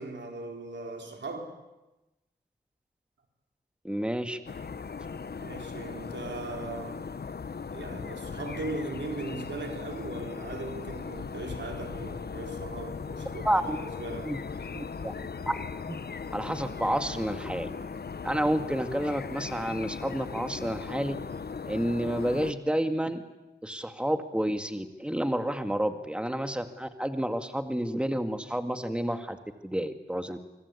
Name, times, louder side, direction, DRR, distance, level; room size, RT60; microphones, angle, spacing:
voice 1, 0.0-1.5 5.3-7.1 7.7-14.3, right 3 dB, 85° right, 3 dB, 4.2 m, -38 dB
voice 2, 3.8-4.4 13.4-13.8 14.2-14.4 14.7-15.6 15.9-16.0 16.3-17.7 18.2-21.2 21.6-23.2 23.6-29.4 29.6-30.4, equal, 5° right, 7 dB, 2.1 m, -30 dB
sound 1, 4.5-22.5, left 5 dB, 60° left, 1.0 m, -38 dB
25.0 x 25.0 x 8.5 m, 1.0 s
cardioid pair, 50°, 18 cm